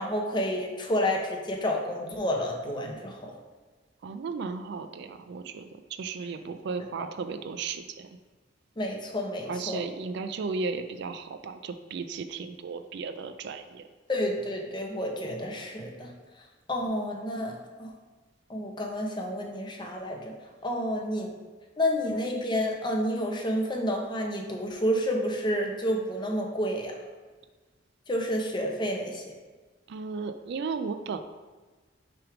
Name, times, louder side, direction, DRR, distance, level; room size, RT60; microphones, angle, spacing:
voice 1, 0.0-3.3 8.8-9.8 14.1-16.1 16.7-17.9 18.5-20.3 20.6-21.3 21.8-26.9 28.1-29.3, equal, 25° left, 1 dB, 0.7 m, -30 dB
voice 2, 4.0-8.1 9.5-13.9 29.9-31.2, right 4 dB, 60° right, 9 dB, 0.3 m, -35 dB
5.9 x 3.4 x 4.9 m, 1.3 s
head